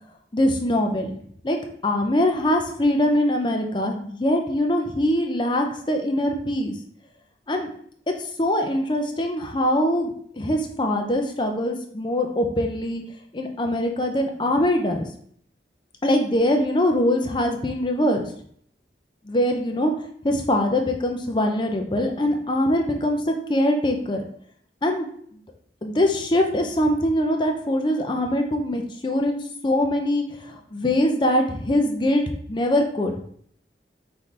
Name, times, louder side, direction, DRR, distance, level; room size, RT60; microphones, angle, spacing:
voice 1, 0.3-1.1 1.4-1.6 1.8-6.7 7.5-7.7 8.4-13.0 13.3-15.1 16.0-18.3 19.3-19.9 20.2-24.2 24.8-25.1 25.8-32.2 32.5-33.1, left 1 dB, 25° left, 3 dB, 0.5 m, -23 dB
5.6 x 2.7 x 3.2 m, 0.63 s
head